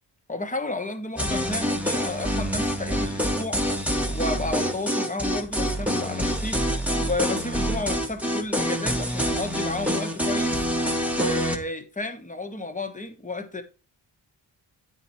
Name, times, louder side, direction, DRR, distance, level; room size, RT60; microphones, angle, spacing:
voice 1, 0.3-3.6 4.1-6.7 7.0-10.7 11.1-13.6, left 2 dB, 15° left, 1.2 m, -32 dB
sound 1, 1.2-11.6, equal, 5° right, 1.2 m, -26 dB
8.9 x 4.6 x 4.2 m
cardioid pair, 60°, 45 cm